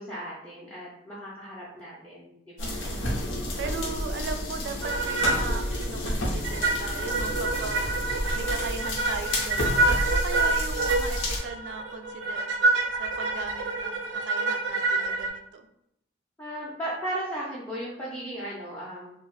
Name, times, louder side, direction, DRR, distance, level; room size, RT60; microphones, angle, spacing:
voice 1, 0.0-2.9 16.4-19.1, right 1 dB, 10° left, -7 dB, 0.5 m, -36 dB
sound 1, 2.6-11.4, left 1 dB, 90° left, 0.7 m, -30 dB
voice 2, 2.6-15.7, right 4 dB, 70° right, 7 dB, 0.3 m, -38 dB
sound 2, 4.8-5.6 5.8-5.9 6.4-15.3, right 3 dB, 90° right, 0.7 m, -27 dB
2.7 x 2.0 x 3.0 m, 0.77 s
head